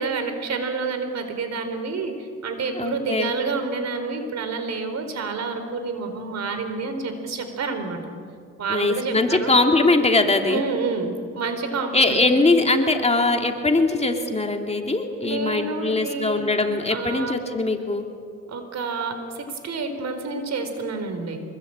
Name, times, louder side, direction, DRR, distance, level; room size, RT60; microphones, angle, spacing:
voice 1, 0.0-8.0 8.6-9.5 10.5-12.2 15.2-16.4 16.9-17.4 18.5-21.4, right 4 dB, 60° right, 7 dB, 4.4 m, -28 dB
voice 2, 2.8-3.3 8.7-10.6 11.9-18.0, left 2 dB, 20° left, 3 dB, 2.8 m, -21 dB
25.5 x 22.0 x 8.9 m, 2.3 s
cardioid pair, 90°, 30 cm